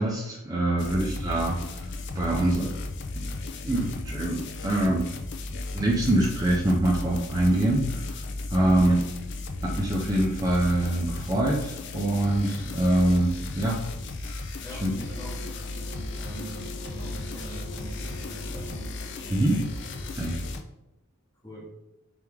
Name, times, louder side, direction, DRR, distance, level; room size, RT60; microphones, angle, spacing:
voice 1, 0.0-1.9 2.1-2.8 3.6-5.1 5.7-8.1 8.5-9.0 9.6-13.8 14.2-14.4 14.8-14.9 19.3-19.6 20.1-20.4, right 1 dB, 15° right, -4 dB, 0.5 m, -24 dB
sound 1, 0.8-20.6, left 2 dB, 55° left, 0.4 m, -35 dB
voice 2, 8.6-8.9 14.6-15.4 16.2-18.9 21.4-21.7, equal, 15° left, -3 dB, 1.0 m, -43 dB
sound 2, 14.8-20.1, right 2 dB, 65° right, 0.5 m, -44 dB
3.4 x 3.3 x 3.4 m, 0.95 s
head